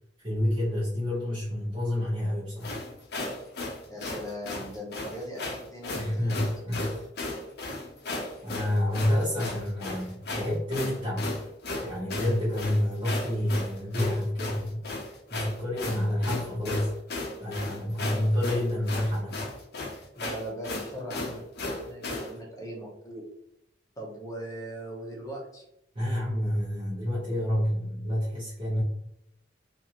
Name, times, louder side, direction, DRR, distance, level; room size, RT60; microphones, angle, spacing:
voice 1, 0.2-2.8 5.9-7.1 8.4-11.3 11.8-14.9 15.3-16.9 17.4-19.5 25.9-28.8, left 1 dB, 30° right, -10 dB, 0.9 m, -28 dB
sound 1, 2.6-22.3, left 2 dB, 60° left, 0.7 m, -35 dB
voice 2, 3.9-6.4 20.2-23.2 24.0-25.6, right 1 dB, 20° left, -2 dB, 0.8 m, -39 dB
2.6 x 2.5 x 2.8 m, 0.81 s
head